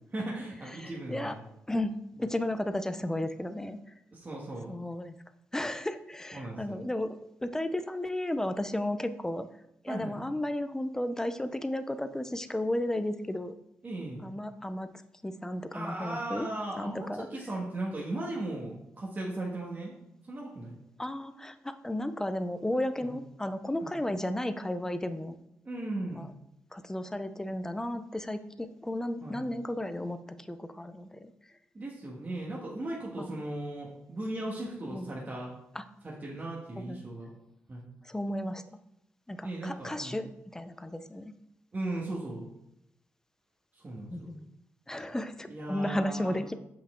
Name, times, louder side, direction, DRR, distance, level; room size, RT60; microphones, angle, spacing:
voice 1, 0.1-1.4 2.2-2.3 4.1-4.7 6.3-6.8 9.9-10.2 13.8-14.2 15.7-19.9 20.2-20.8 23.0-23.1 23.8-23.9 25.7-26.2 29.2-29.4 31.7-35.5 36.0-37.3 37.7-37.9 39.4-40.2 41.7-42.5 43.7-44.3 45.5-46.4, right 1 dB, 35° right, -4 dB, 1.6 m, -37 dB
voice 2, 0.8-1.3 1.7-3.8 4.7-5.1 5.5-7.2 7.4-9.5 9.8-13.5 14.2-14.9 15.2-16.5 16.8-17.3 21.0-25.4 26.1-26.3 26.7-30.2 30.5-31.3 33.2-33.4 34.9-35.2 35.7-35.8 36.9-37.0 38.1-38.6 39.3-40.3 40.5-41.3 44.1-44.4 44.9-46.5, left 1 dB, 10° left, 10 dB, 0.6 m, -33 dB
7.1 x 5.6 x 3.7 m, 0.82 s
cardioid pair, 75°, 5 cm